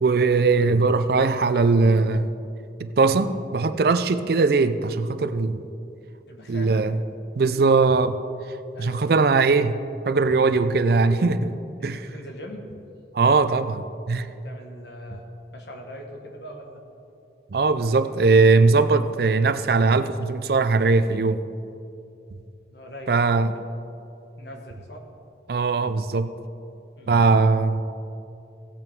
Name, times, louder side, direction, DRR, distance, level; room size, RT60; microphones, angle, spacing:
voice 1, 0.0-2.3 2.8-5.6 6.5-7.0 7.4-8.2 8.8-9.8 10.1-11.6 11.8-12.1 13.1-14.3 17.5-21.4 23.1-23.5 25.5-26.3 27.1-27.8, right 4 dB, 55° right, 12 dB, 0.4 m, -20 dB
voice 2, 6.3-6.9 8.7-9.2 11.8-12.7 14.4-16.8 22.7-23.6 24.4-25.1 27.0-27.2, equal, 65° left, 2 dB, 1.5 m, -41 dB
16.5 x 8.2 x 3.6 m, 2.6 s
head